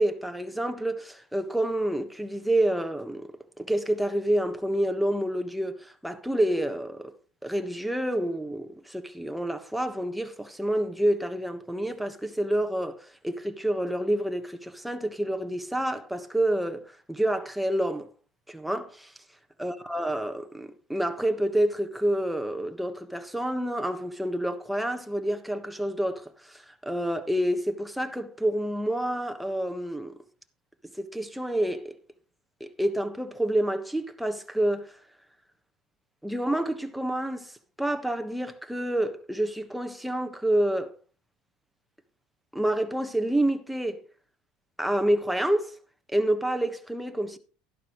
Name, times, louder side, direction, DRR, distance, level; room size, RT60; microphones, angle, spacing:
voice 1, 0.0-3.3 3.6-7.1 7.4-18.1 18.5-19.1 19.6-30.1 31.0-31.9 32.6-34.9 36.2-37.5 37.8-40.9 42.5-44.0 44.8-45.7 46.1-47.4, right 1 dB, ahead, 1.3 m, -28 dB
11.5 x 11.5 x 3.1 m
supercardioid pair, 95°, 2 cm